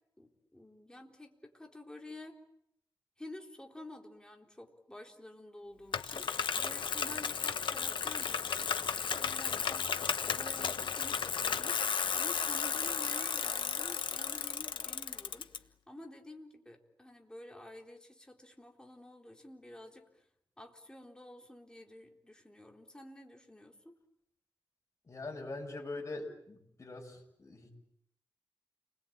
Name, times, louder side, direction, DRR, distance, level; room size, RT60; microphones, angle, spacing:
voice 1, 0.2-2.4 3.2-10.0 10.3-15.5 15.9-20.2 20.6-24.0, left 1 dB, 10° left, 2 dB, 3.8 m, -51 dB
Bicycle, 5.9-15.6, left 7 dB, 85° left, 1.3 m, -34 dB
voice 2, 25.0-27.7, left 2 dB, 35° left, 1 dB, 7.2 m, -43 dB
30.0 x 21.5 x 8.8 m, 0.76 s
wide cardioid pair, 105°, 8 cm